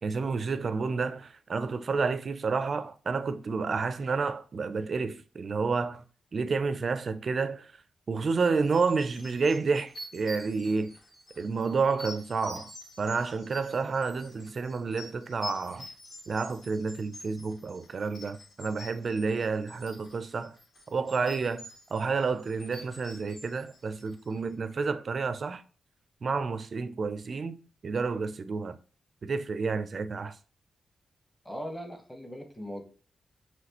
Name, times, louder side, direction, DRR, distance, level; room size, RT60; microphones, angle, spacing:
voice 1, 0.0-6.0 6.3-7.7 8.1-10.9 11.4-12.7 13.0-15.9 16.3-20.5 20.9-21.6 21.9-25.6 26.2-27.6 27.8-28.8 29.2-30.4, right 4 dB, 40° right, 0.4 m, -30 dB
sound 1, 8.6-24.4, left 1 dB, 55° left, 2.0 m, -47 dB
voice 2, 31.4-32.8, equal, 10° left, 0.9 m, -39 dB
5.8 x 3.0 x 2.9 m
wide cardioid pair, 175°, 0 cm